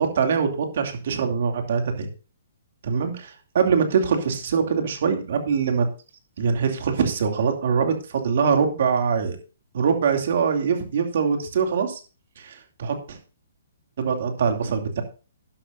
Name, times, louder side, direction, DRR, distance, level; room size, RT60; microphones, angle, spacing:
voice 1, 0.0-2.1 2.8-5.9 6.4-9.4 9.7-12.0 12.4-13.2 14.0-15.0, right 6 dB, 60° right, 5 dB, 2.6 m, -23 dB
11.5 x 11.5 x 2.7 m, 0.33 s
hypercardioid pair, 155°, 0 cm